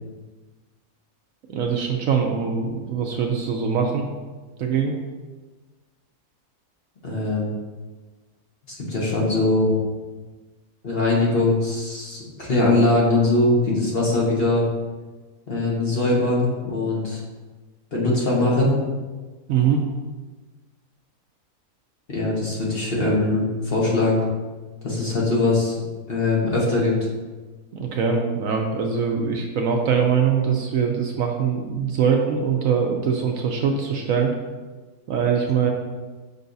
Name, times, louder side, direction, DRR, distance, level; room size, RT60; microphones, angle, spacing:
voice 1, 1.5-4.0 4.6-4.9 19.5-19.8 27.7-34.3 35.1-35.7, right 6 dB, 65° right, 2 dB, 0.9 m, -22 dB
voice 2, 7.0-7.5 8.7-9.8 10.8-14.7 15.5-17.2 17.9-18.8 22.1-24.2 24.8-25.8 26.1-26.9, left 2 dB, 40° left, -4 dB, 1.4 m, -21 dB
6.7 x 5.5 x 2.6 m, 1.3 s
omnidirectional pair, 1.7 m